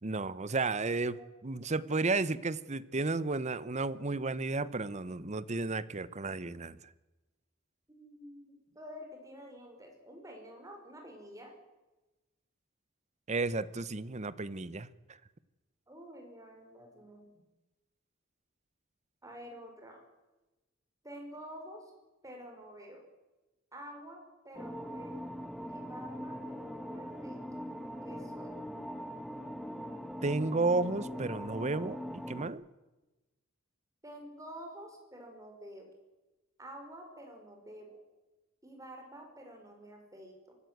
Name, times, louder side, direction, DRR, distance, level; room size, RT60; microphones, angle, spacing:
voice 1, 0.0-6.8 13.3-14.9 30.2-32.6, right 3 dB, 35° right, 16 dB, 0.8 m, -33 dB
voice 2, 7.9-11.5 15.9-17.3 19.2-20.0 21.0-21.9 22.2-23.0 23.7-25.2 25.7-27.4 28.0-28.6 34.0-35.9 36.6-38.0 38.6-40.5, equal, 15° right, 2 dB, 5.5 m, -49 dB
sound 1, 24.5-32.5, equal, ahead, 1.1 m, -41 dB
24.5 x 14.5 x 9.3 m, 1.1 s
head